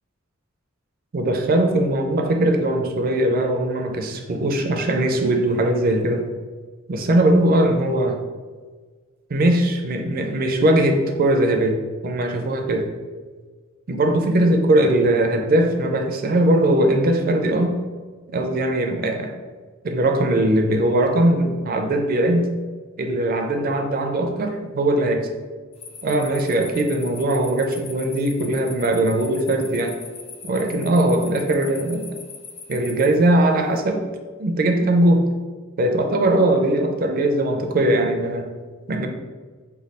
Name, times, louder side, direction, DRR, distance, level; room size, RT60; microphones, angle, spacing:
voice 1, 1.1-6.3 6.9-8.2 9.3-12.9 13.9-17.7 18.3-19.3 19.8-22.5 23.0-25.3 26.0-29.9 30.4-32.1 32.7-34.0 34.4-35.2 35.8-38.5 38.9-39.1, right 1 dB, 45° right, 4 dB, 0.4 m, -20 dB
sound 1, 25.7-33.8, left 5 dB, 30° left, 0.3 m, -41 dB
3.2 x 2.2 x 4.1 m, 1.5 s
head